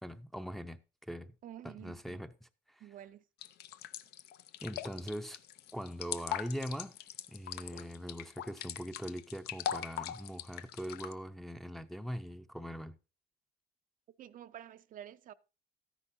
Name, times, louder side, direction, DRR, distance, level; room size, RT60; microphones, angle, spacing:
voice 1, 0.0-1.3 1.6-2.9 4.6-5.4 5.7-7.0 7.3-13.0, equal, ahead, 0.5 m, -42 dB
voice 2, 1.4-2.2 2.8-3.2 14.2-15.3, right 11 dB, 55° right, 0.5 m, -49 dB
sound 1, 3.4-11.1, left 10 dB, 75° left, 0.6 m, -41 dB
13.0 x 10.0 x 2.6 m
cardioid pair, 110°, 17 cm